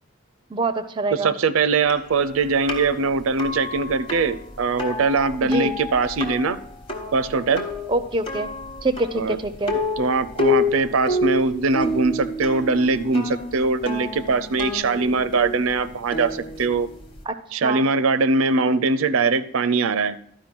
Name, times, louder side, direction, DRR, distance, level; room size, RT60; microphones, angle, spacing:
voice 1, 0.5-1.3 5.4-5.7 7.9-8.5 8.8-9.8 17.3-17.4 17.6-17.8, right 2 dB, 20° right, 12 dB, 0.4 m, -25 dB
voice 2, 1.1-6.6 7.1-7.6 9.2-9.4 10.0-16.9 17.5-20.2, right 4 dB, 75° right, 15 dB, 0.5 m, -21 dB
sound 1, 1.9-17.2, left 2 dB, 25° left, 1.0 m, -29 dB
12.0 x 5.0 x 5.9 m, 0.66 s
head